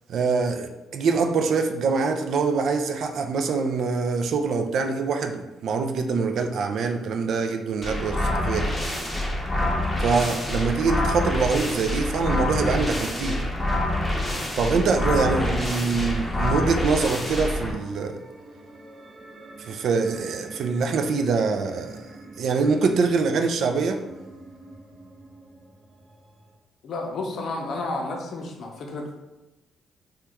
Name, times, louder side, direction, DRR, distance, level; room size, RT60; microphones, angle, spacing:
voice 1, 0.1-8.8 10.0-13.4 14.6-18.2 19.7-22.0 22.4-24.0, right 4 dB, 70° right, 5 dB, 0.3 m, -24 dB
sound 1, 7.8-17.7, left 1 dB, 10° left, 0.7 m, -26 dB
sound 2, 14.6-26.6, right 2 dB, 35° right, 0.6 m, -46 dB
voice 2, 26.8-29.2, left 2 dB, 65° left, 2 dB, 0.6 m, -31 dB
2.9 x 2.2 x 3.4 m, 1.0 s
cardioid pair, 90°, 0 cm